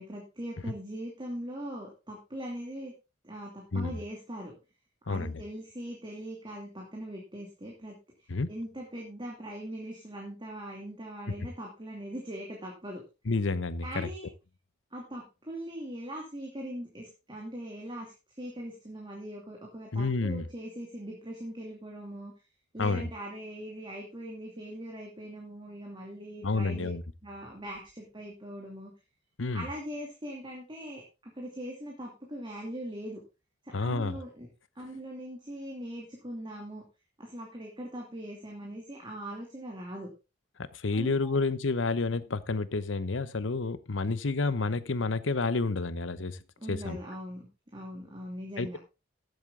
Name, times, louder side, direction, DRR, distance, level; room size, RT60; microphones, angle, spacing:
voice 1, 0.0-2.9 3.2-4.6 5.1-8.0 8.5-13.0 13.8-14.3 14.9-18.1 18.4-22.3 22.7-26.9 27.2-28.9 29.5-33.2 33.6-34.5 34.8-36.8 37.2-40.1 40.9-41.4 46.6-48.8, right 1 dB, 25° right, 2.7 m, -41 dB
voice 2, 5.1-5.4 8.3-8.5 13.3-14.1 19.9-20.5 22.8-23.1 26.4-27.0 29.4-29.7 33.7-34.2 40.7-46.4 46.7-47.0 48.6-48.8, left 3 dB, 85° left, 0.9 m, -29 dB
14.5 x 8.0 x 3.7 m
head